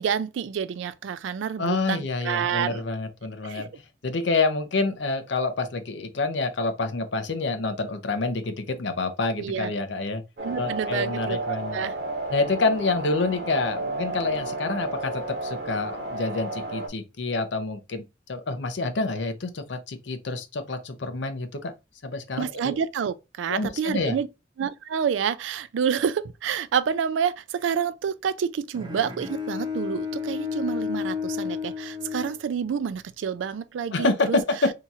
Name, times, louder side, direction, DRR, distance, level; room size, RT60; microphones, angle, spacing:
voice 1, 0.0-2.8 3.5-3.6 9.4-9.7 10.4-11.9 22.4-24.3 24.6-34.4, right 7 dB, 80° right, 0.3 m, -28 dB
voice 2, 1.6-3.7 4.0-10.2 10.6-11.8 12.3-18.0 18.3-21.7 22.0-22.7 23.5-24.2 33.9-34.7, left 3 dB, 70° left, 0.6 m, -27 dB
sound 1, 10.4-16.9, right 2 dB, 60° right, 0.9 m, -32 dB
Bowed string instrument, 28.7-33.0, left 6 dB, 25° right, 0.8 m, -32 dB
2.8 x 2.4 x 4.0 m
head